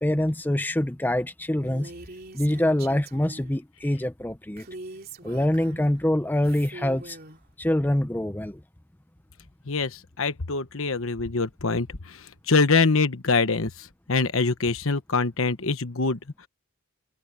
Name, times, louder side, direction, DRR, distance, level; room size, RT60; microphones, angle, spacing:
voice 1, 0.0-1.9 2.3-4.7 5.2-7.2 7.6-8.6, left 1 dB, 10° left, 0.7 m, -25 dB
Female speech woman speaking, 1.6-3.6 4.6-6.0 6.4-7.4, right 2 dB, 45° right, 3.0 m, -43 dB
voice 2, 9.7-16.2, left 4 dB, 70° left, 1.2 m, -24 dB
head